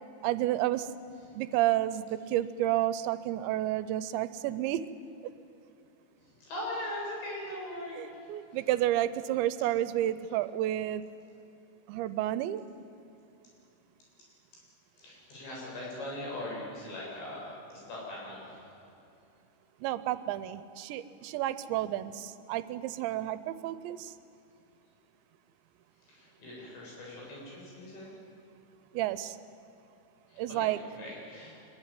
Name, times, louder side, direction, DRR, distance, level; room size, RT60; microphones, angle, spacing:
voice 1, 0.2-0.9 1.3-4.8 8.0-11.0 11.9-12.6 19.8-24.1 28.9-29.4 30.4-30.8, right 13 dB, 80° right, 14 dB, 3.0 m, -30 dB
voice 2, 6.2-8.6 15.0-18.6 26.1-28.1 30.3-31.6, left 1 dB, 70° left, -4 dB, 10.0 m, -41 dB
25.0 x 22.0 x 9.2 m, 2.8 s
omnidirectional pair, 5.2 m